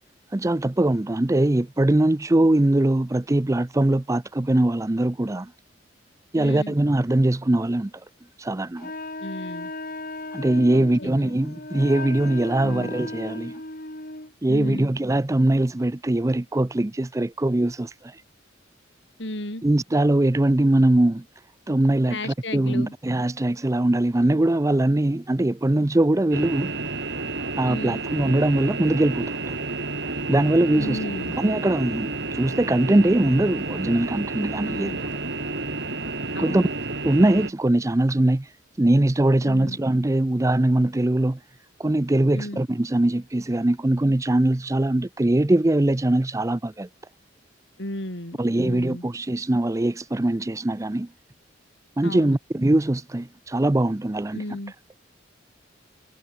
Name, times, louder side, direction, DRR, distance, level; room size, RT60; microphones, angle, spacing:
voice 1, 0.3-5.5 6.3-7.9 8.4-8.9 10.3-13.5 14.4-18.2 19.6-21.2 21.7-26.7 27.6-29.6 30.3-31.0 31.4-34.9 36.4-36.6 37.0-38.5 38.8-41.4 41.8-46.9 48.4-51.1 52.0-54.4, right 1 dB, 15° right, 0.5 m, -21 dB
voice 2, 6.4-6.8 9.2-9.7 10.7-11.1 12.6-12.9 14.5-14.9 19.2-19.6 22.1-22.9 27.7-28.0 30.7-31.4 34.6-35.0 36.3-36.7 39.4-39.8 42.3-42.6 47.8-49.0 52.0-52.4 54.3-54.7, left 1 dB, 65° left, 5.9 m, -34 dB
Wind instrument woodwind instrument, 8.8-14.3, left 2 dB, 50° left, 5.9 m, -36 dB
sound 1, 26.3-37.5, right 3 dB, 60° right, 5.0 m, -30 dB
head